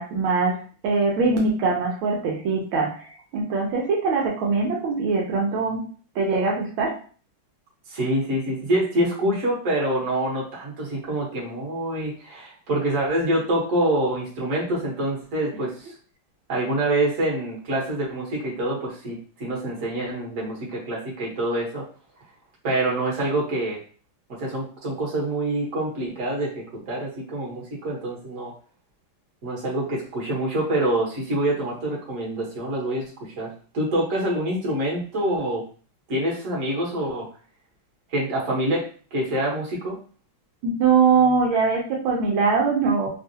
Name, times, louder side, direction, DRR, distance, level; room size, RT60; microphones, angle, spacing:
voice 1, 0.0-3.0 3.3-5.8 6.1-7.0 40.6-43.1, right 4 dB, 80° right, -1 dB, 1.5 m, -22 dB
voice 2, 7.9-15.9 16.5-21.9 22.6-23.8 24.3-28.5 29.4-35.6 36.1-37.3 38.1-38.8 39.1-40.0, right 1 dB, 45° right, -4 dB, 1.4 m, -26 dB
3.5 x 2.3 x 2.7 m, 0.40 s
omnidirectional pair, 2.2 m